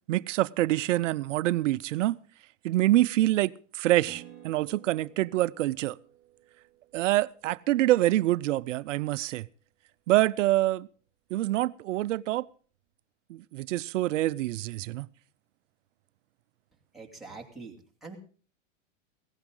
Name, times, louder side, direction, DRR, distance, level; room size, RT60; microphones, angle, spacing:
voice 1, 0.1-2.2 2.6-6.0 6.9-9.5 10.1-10.9 11.3-12.4 13.3-15.1, right 16 dB, 75° right, 0.6 m, -26 dB
Acoustic guitar, 4.0-9.0, right 10 dB, 30° right, 5.5 m, -55 dB
voice 2, 16.9-18.2, right 4 dB, ahead, 2.5 m, -44 dB
17.0 x 15.0 x 3.8 m
supercardioid pair, 140°, 38 cm